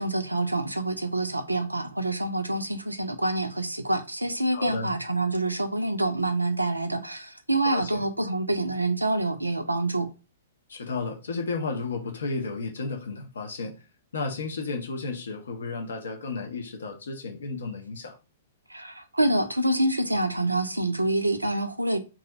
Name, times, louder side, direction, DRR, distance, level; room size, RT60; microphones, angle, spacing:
voice 1, 0.0-10.1 18.7-22.0, right 2 dB, 85° right, 0.4 m, -26 dB
voice 2, 4.5-4.9 7.6-8.1 10.7-13.7 14.1-18.1, left 3 dB, 65° left, 0.5 m, -33 dB
2.4 x 2.0 x 3.8 m
figure-of-eight pair, 110°, 0 cm